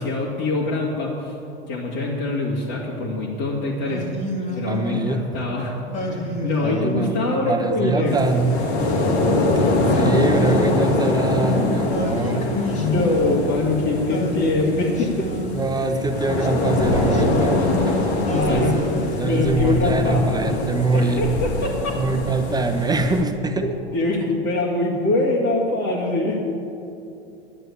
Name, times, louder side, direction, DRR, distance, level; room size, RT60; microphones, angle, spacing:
voice 1, 0.0-1.3 1.7-4.0 4.6-8.2 12.7-15.3 18.3-18.8 19.3-20.2 20.7-21.9 23.6-26.4, left 2 dB, 50° left, -5 dB, 2.3 m, -24 dB
Singing, 3.8-5.3 5.9-7.3 7.9-9.2 9.8-11.3 11.9-13.7 14.1-15.7 16.2-17.9 18.2-19.9, left 1 dB, 20° left, 1.9 m, -31 dB
voice 2, 4.7-5.2 6.6-8.6 9.6-12.5 15.5-18.9 19.2-21.3 21.9-23.7, right 3 dB, 10° right, 5 dB, 0.9 m, -24 dB
sound 1, 8.0-23.2, left 2 dB, 70° left, 2.1 m, -23 dB
11.0 x 7.9 x 8.4 m, 2.7 s
hypercardioid pair, 95°, 33 cm